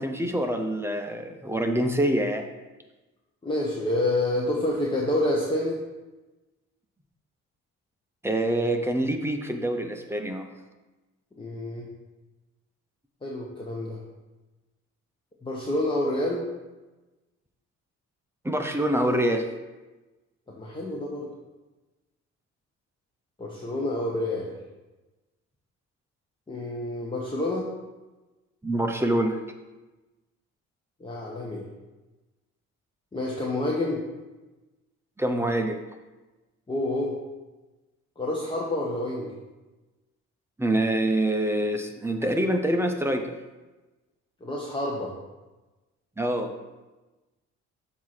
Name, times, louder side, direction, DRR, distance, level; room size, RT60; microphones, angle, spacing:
voice 1, 0.0-2.5 8.2-10.5 18.4-19.5 28.6-29.4 35.2-35.8 40.6-43.3 46.2-46.5, right 1 dB, 10° right, 5 dB, 0.7 m, -25 dB
voice 2, 3.4-5.8 11.4-11.9 13.2-14.0 15.4-16.4 20.5-21.3 23.4-24.5 26.5-27.7 31.0-31.6 33.1-34.0 36.7-37.1 38.2-39.3 44.4-45.1, left 1 dB, 15° left, -3 dB, 1.0 m, -28 dB
7.3 x 2.8 x 5.9 m, 1.1 s
cardioid pair, 90°, 30 cm